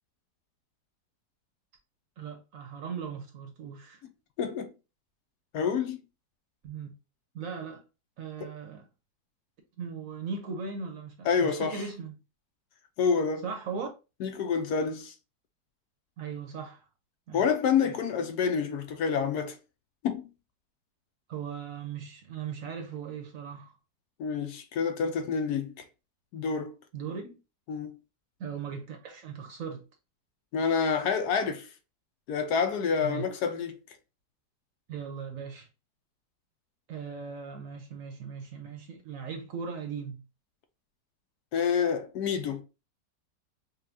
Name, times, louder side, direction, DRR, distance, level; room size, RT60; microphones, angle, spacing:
voice 1, 2.2-4.0 6.6-6.9 7.3-7.8 8.2-8.9 9.8-12.2 13.4-13.9 16.2-16.9 17.3-17.5 17.8-18.0 21.3-23.7 26.9-27.4 28.4-29.8 33.0-33.3 34.9-35.7 36.9-40.2, right 6 dB, 60° right, 1.0 m, -38 dB
voice 2, 4.4-4.7 5.5-6.0 8.4-8.5 11.2-11.8 13.0-13.5 14.2-15.1 17.3-19.6 20.0-20.3 24.2-25.8 26.3-26.8 27.7-28.0 30.5-31.7 32.3-33.8 41.5-42.6, left 6 dB, 75° left, 1.1 m, -28 dB
5.4 x 2.3 x 2.6 m
omnidirectional pair, 1.9 m